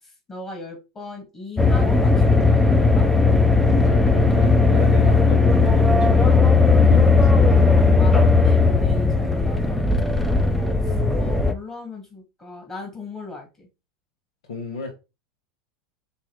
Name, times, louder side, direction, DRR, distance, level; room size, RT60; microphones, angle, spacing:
voice 1, 0.0-3.1 6.8-7.0 8.0-13.7, left 3 dB, 25° left, 1.9 m, -38 dB
sound 1, 1.6-11.5, left 3 dB, 5° left, 0.5 m, -17 dB
voice 2, 3.7-6.5 6.8-7.2 14.5-14.9, left 3 dB, 85° left, 1.4 m, -35 dB
5.4 x 2.9 x 3.2 m
supercardioid pair, 115°, 3 cm